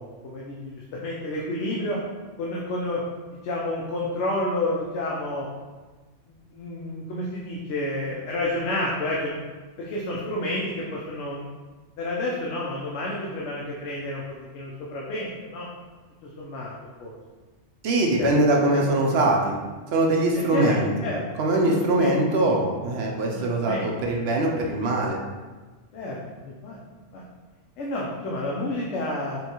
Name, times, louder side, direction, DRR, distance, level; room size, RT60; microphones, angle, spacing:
voice 1, 0.0-2.0 2.4-3.0 3.4-5.5 6.3-9.4 9.8-11.5 12.0-14.2 14.5-15.7 16.2-16.7 17.0-17.2 18.2-18.3 18.7-18.8 19.1-19.3 20.3-20.8 21.0-21.2 21.6-22.2 23.6-23.9 24.4-24.6 25.9-26.2 26.4-26.8 27.1-27.2 27.8-29.4, left 1 dB, 70° left, -4 dB, 0.9 m, -30 dB
voice 2, 17.8-19.6 19.9-20.9 21.4-25.2, right 2 dB, 65° right, 0 dB, 0.8 m, -22 dB
5.3 x 2.3 x 2.9 m, 1.3 s
omnidirectional pair, 1.3 m